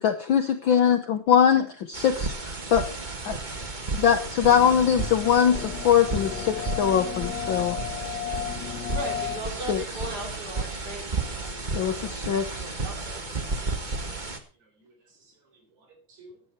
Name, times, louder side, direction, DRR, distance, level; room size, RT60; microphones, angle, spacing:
voice 1, 0.0-2.9 3.2-3.4 3.9-7.8 9.7-9.8 11.7-12.8, left 8 dB, 90° left, 7 dB, 1.0 m, -22 dB
sound 1, 1.9-14.4, right 3 dB, 45° right, 0.5 m, -33 dB
sound 2, 3.5-14.2, left 7 dB, 40° left, 5.5 m, -49 dB
sound 3, 4.5-9.4, left 11 dB, 70° left, 1.9 m, -34 dB
voice 2, 8.9-13.4, right 1 dB, 30° right, 2 dB, 4.3 m, -38 dB
voice 3, 14.5-16.4, right 1 dB, 65° right, 3 dB, 5.5 m, -56 dB
17.0 x 9.7 x 4.5 m, 0.40 s
omnidirectional pair, 3.5 m